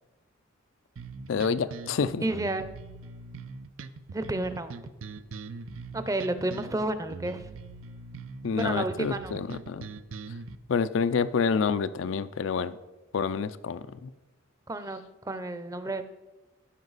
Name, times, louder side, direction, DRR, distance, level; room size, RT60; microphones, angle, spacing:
sound 1, 1.0-10.6, right 4 dB, 85° right, 0.5 m, -42 dB
voice 1, 1.3-2.2 8.4-9.9 10.7-12.8 13.1-14.1, left 5 dB, 70° left, 14 dB, 0.4 m, -28 dB
voice 2, 2.2-2.7 4.1-4.8 5.9-7.4 8.5-9.4 14.7-16.0, right 2 dB, 15° right, 10 dB, 0.5 m, -31 dB
15.5 x 5.3 x 4.0 m, 1.1 s
head